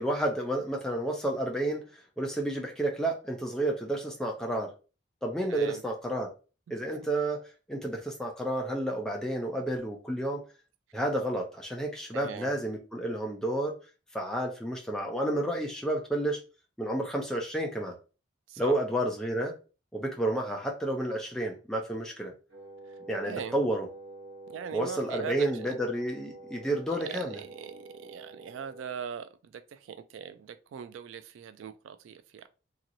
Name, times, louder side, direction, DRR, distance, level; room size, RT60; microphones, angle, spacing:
voice 1, 0.0-4.7 5.2-6.3 6.7-7.4 7.7-10.4 10.9-13.8 14.1-16.4 16.8-18.0 18.6-19.5 19.9-22.3 23.1-23.9 24.7-27.4, right 1 dB, 5° left, 0.6 m, -31 dB
voice 2, 5.5-5.8 12.1-12.5 18.5-18.7 23.2-23.6 24.5-25.8 26.9-32.5, right 7 dB, 90° right, 0.3 m, -41 dB
Wind instrument woodwind instrument, 22.5-29.1, right 2 dB, 60° right, 1.1 m, -47 dB
3.0 x 2.9 x 2.6 m
head